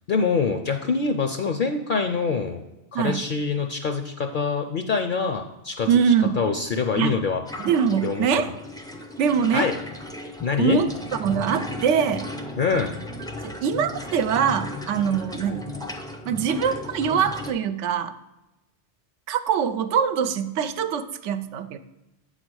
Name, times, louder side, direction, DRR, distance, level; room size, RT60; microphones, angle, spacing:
voice 1, 0.1-2.6 2.9-5.9 6.3-7.4 8.0-8.3 9.5-9.8 10.4-10.8 12.6-12.9, left 5 dB, 55° left, 5 dB, 0.6 m, -25 dB
voice 2, 5.9-6.4 7.0-7.1 7.6-8.5 9.2-9.7 10.6-10.9 11.2-12.3 13.4-15.7 16.2-18.1 19.3-21.8, right 7 dB, 85° right, 10 dB, 0.9 m, -23 dB
sound 1, 7.5-17.5, left 2 dB, 5° left, 0.4 m, -36 dB
8.2 x 4.1 x 6.2 m, 0.97 s
omnidirectional pair, 1.2 m